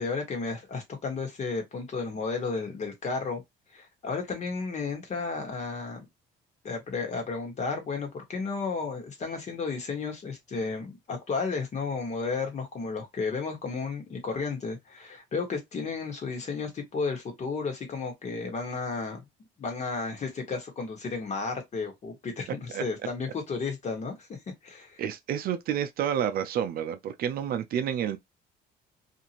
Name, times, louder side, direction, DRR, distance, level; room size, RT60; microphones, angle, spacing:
voice 1, 0.0-3.4 3.7-6.1 6.6-19.3 19.6-24.4 24.6-25.0, left 4 dB, 45° left, 1.3 m, -33 dB
voice 2, 25.0-28.2, right 9 dB, 60° right, 0.5 m, -29 dB
2.7 x 2.5 x 2.8 m
cardioid pair, 110°, 17 cm